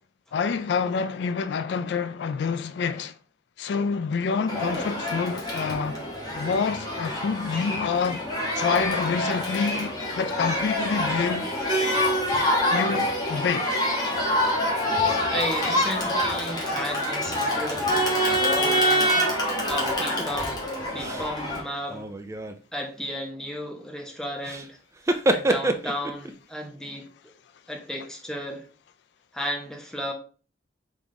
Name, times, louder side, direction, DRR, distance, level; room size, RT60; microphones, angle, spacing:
voice 1, 0.3-3.2 3.6-6.0 6.4-8.3 8.6-11.5 12.7-13.9, left 5 dB, 75° left, 0.3 m, -27 dB
Crowd, 4.5-21.6, left 1 dB, 25° left, 1.2 m, -26 dB
voice 2, 15.3-20.7 20.9-22.1 22.7-24.8 25.1-27.1 27.7-28.7 29.3-30.1, equal, 5° left, 0.8 m, -34 dB
sound 1, 20.0-20.3 21.0-21.3 21.8-22.6 24.4-24.7 25.0-26.3, right 1 dB, 15° right, 0.3 m, -27 dB
3.8 x 3.5 x 3.6 m
head